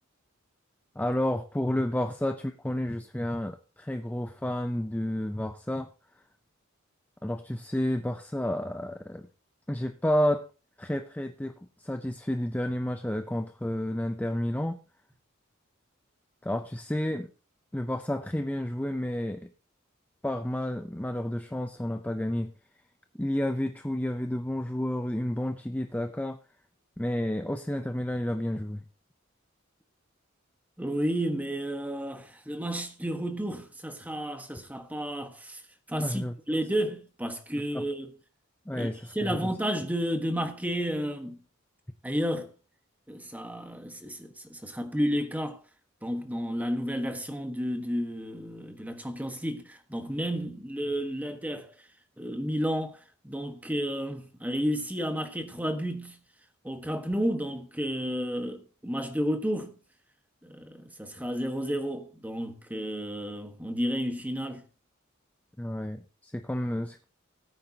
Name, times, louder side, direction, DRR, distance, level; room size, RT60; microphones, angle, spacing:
voice 1, 1.0-5.9 7.2-9.3 9.7-10.4 10.8-11.5 11.8-14.8 16.4-17.3 17.7-19.5 20.2-22.5 23.1-26.4 27.0-28.8 36.0-36.4 37.7-37.8 38.7-39.5 65.6-67.0, left 1 dB, 10° left, 0.6 m, -30 dB
voice 2, 30.8-35.6 35.9-38.1 38.7-41.4 42.0-42.5 43.1-45.6 46.0-51.7 52.2-56.2 56.6-59.7 60.4-64.6, equal, 10° right, 1.4 m, -32 dB
17.5 x 9.0 x 2.9 m
head